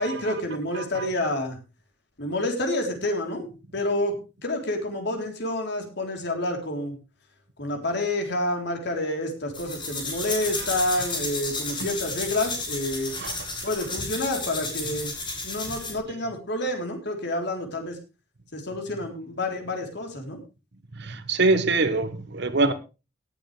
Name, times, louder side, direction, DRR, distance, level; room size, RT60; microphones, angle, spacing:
voice 1, 0.0-1.6 2.2-4.1 4.4-7.0 7.6-13.1 13.6-15.1 15.4-18.0 18.5-20.4, left 1 dB, 55° left, 3.6 m, -28 dB
voice 2, 0.7-1.1 11.8-11.9 13.1-13.5 20.9-22.7, right 3 dB, 60° right, 1.3 m, -24 dB
sound 1, 9.5-16.0, left 3 dB, 25° left, 6.3 m, -32 dB
18.0 x 9.0 x 3.3 m
head